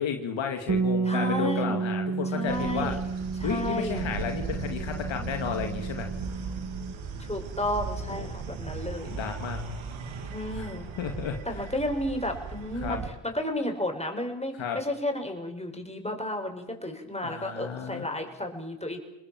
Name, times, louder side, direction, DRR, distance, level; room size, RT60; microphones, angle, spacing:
voice 1, 0.0-3.0 3.4-6.1 8.1-8.4 9.1-9.6 10.5-11.4 12.8-13.0 14.6-14.8 17.2-18.1, left 7 dB, 75° left, 5 dB, 2.3 m, -33 dB
Bass guitar, 0.7-6.9, right 4 dB, 40° right, 2.0 m, -31 dB
voice 2, 1.0-1.8 2.3-3.0 3.4-4.0 7.2-9.2 10.3-10.9 11.4-19.0, left 1 dB, 15° left, 3 dB, 6.8 m, -32 dB
sound 1, 2.5-13.1, right 4 dB, 85° right, 2.7 m, -37 dB
28.5 x 20.0 x 7.7 m, 0.98 s
supercardioid pair, 40°, 46 cm